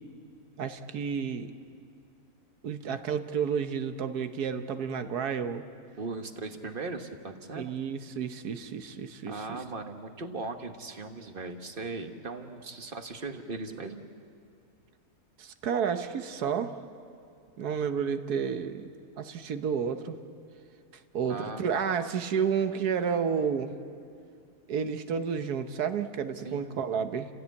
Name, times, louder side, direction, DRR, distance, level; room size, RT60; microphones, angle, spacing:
voice 1, 0.6-1.5 2.6-5.6 7.6-9.6 15.4-16.7 17.6-18.9 19.2-20.2 21.1-23.7 24.7-27.3, right 7 dB, 75° right, 9 dB, 1.5 m, -31 dB
voice 2, 6.0-7.7 9.3-14.1 21.2-21.6 26.4-26.8, right 3 dB, 35° right, 7 dB, 1.3 m, -38 dB
30.0 x 16.0 x 8.4 m, 2.5 s
omnidirectional pair, 1.7 m